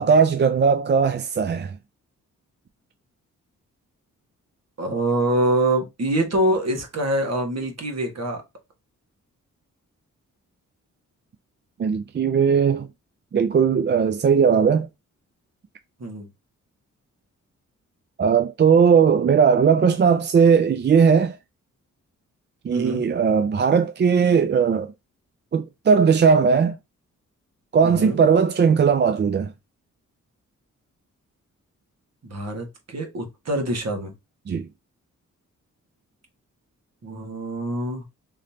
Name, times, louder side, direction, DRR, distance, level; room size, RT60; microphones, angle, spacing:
voice 1, 0.0-1.8 11.8-12.9 13.3-14.9 18.2-21.4 22.6-24.9 25.5-26.8 27.7-29.5 34.5-34.7, right 6 dB, 35° right, 0.4 m, -18 dB
voice 2, 4.8-8.4 16.0-16.3 22.7-23.0 27.8-28.2 32.2-34.1 37.0-38.0, right 1 dB, 55° right, 1.5 m, -25 dB
3.9 x 3.2 x 2.8 m
cardioid pair, 60°, 31 cm